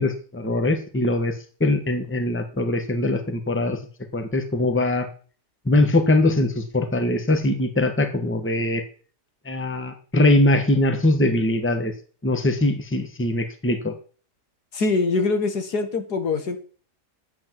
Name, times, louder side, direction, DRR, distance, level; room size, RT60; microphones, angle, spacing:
voice 1, 0.0-1.3 1.6-3.8 4.1-5.1 5.6-8.8 9.4-11.9 12.2-13.9, left 1 dB, 10° left, 7 dB, 1.4 m, -22 dB
voice 2, 14.7-16.6, left 3 dB, 70° left, 7 dB, 2.3 m, -23 dB
12.0 x 8.6 x 7.6 m, 0.41 s
omnidirectional pair, 1.8 m